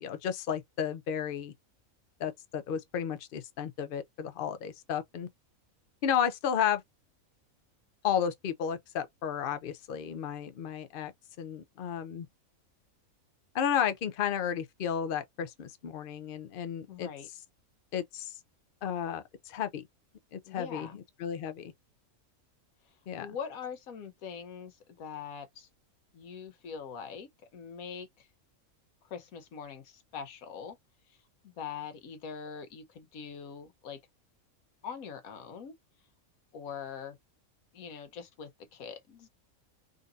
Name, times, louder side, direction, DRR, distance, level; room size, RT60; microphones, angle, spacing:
voice 1, 0.0-1.5 2.2-5.3 6.0-6.8 8.0-11.1 11.4-12.3 13.5-17.1 17.9-18.3 18.8-19.8 20.3-21.7 23.1-23.3, left 8 dB, 55° left, 0.6 m, -33 dB
voice 2, 16.9-17.3 20.5-21.0 23.2-25.7 26.1-28.3 29.0-30.8 31.4-34.0 34.8-35.7 36.5-37.2 37.7-39.3, left 7 dB, 80° left, 1.2 m, -43 dB
3.8 x 2.6 x 2.3 m
omnidirectional pair, 1.5 m